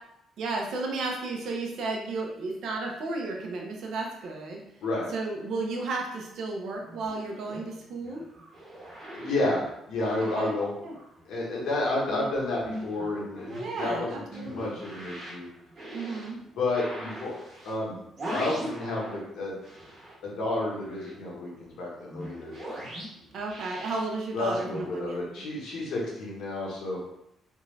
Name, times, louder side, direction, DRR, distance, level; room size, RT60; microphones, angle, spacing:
voice 1, 0.4-4.6 5.1-8.2 10.3-10.6 10.8-10.9 12.1-12.3 13.6-14.7 15.9-16.4 23.3-25.2, right 3 dB, 60° right, 0 dB, 0.7 m, -33 dB
sound 1, 6.7-11.4 11.7-19.3 19.6-24.8, right 1 dB, 30° right, 1.3 m, -42 dB
voice 2, 9.1-10.7 11.2-15.5 16.5-17.4 17.6-18.0 18.3-19.6 20.2-22.5 24.3-27.0, left 2 dB, 65° left, -4 dB, 1.2 m, -31 dB
3.5 x 2.6 x 3.2 m, 0.80 s
cardioid pair, 170°, 0 cm